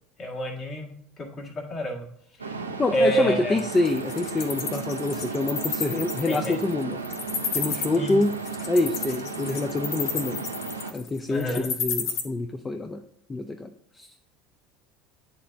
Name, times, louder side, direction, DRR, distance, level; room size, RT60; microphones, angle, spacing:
voice 1, 0.2-0.9 1.2-2.1 2.4-2.6 2.9-3.6 6.3-6.5 7.9-8.1 11.3-11.7, right 1 dB, 40° left, 0 dB, 1.7 m, -27 dB
sound 1, 2.4-10.9, right 4 dB, 90° right, 0.5 m, -34 dB
voice 2, 2.8-7.0 7.5-8.3 8.7-10.4 10.9-13.0 13.3-13.7 14.0-14.1, left 2 dB, 20° left, 6 dB, 0.5 m, -26 dB
Wild animals, 3.6-12.2, left 6 dB, 55° left, 0.9 m, -31 dB
9.4 x 3.4 x 3.8 m, 0.70 s
figure-of-eight pair, 70°, 0 cm